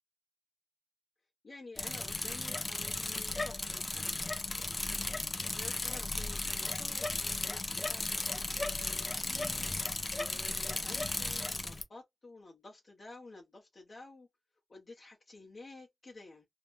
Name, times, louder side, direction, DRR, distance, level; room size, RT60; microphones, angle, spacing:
voice 1, 1.4-4.1 5.4-14.3 14.7-16.5, left 2 dB, 50° left, 0.9 m, -52 dB
Bicycle, 1.8-11.8, left 2 dB, 30° left, 0.5 m, -35 dB
2.8 x 2.2 x 2.5 m
wide cardioid pair, 80°, 0 cm